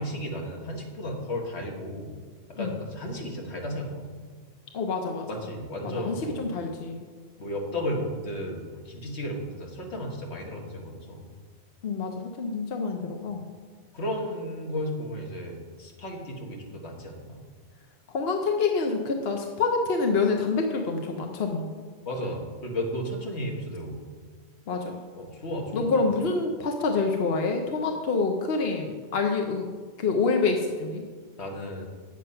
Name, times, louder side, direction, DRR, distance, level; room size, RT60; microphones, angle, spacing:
voice 1, 0.0-2.1 2.5-4.1 5.3-6.4 7.4-11.3 13.9-17.3 22.1-24.0 25.1-26.0 31.4-31.8, equal, 90° left, 0 dB, 1.9 m, -34 dB
voice 2, 4.7-5.3 5.8-7.0 11.8-13.4 18.1-21.7 24.7-25.0 25.7-29.6 30.0-31.0, left 4 dB, 65° left, 3 dB, 1.0 m, -27 dB
9.0 x 7.5 x 5.6 m, 1.5 s
omnidirectional pair, 1.1 m